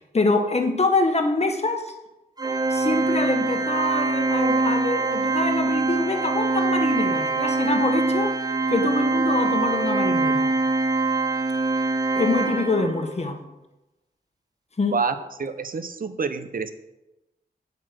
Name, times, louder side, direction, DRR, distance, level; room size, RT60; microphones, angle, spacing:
voice 1, 0.0-1.9 2.7-8.3 8.7-10.5 12.1-13.4 14.8-15.0, left 3 dB, 40° left, 5 dB, 1.5 m, -25 dB
Organ, 2.4-13.1, right 3 dB, 25° right, 1.0 m, -23 dB
voice 2, 14.9-16.7, right 4 dB, 60° right, 11 dB, 0.8 m, -28 dB
8.8 x 8.3 x 6.4 m, 0.97 s
wide cardioid pair, 90°, 17 cm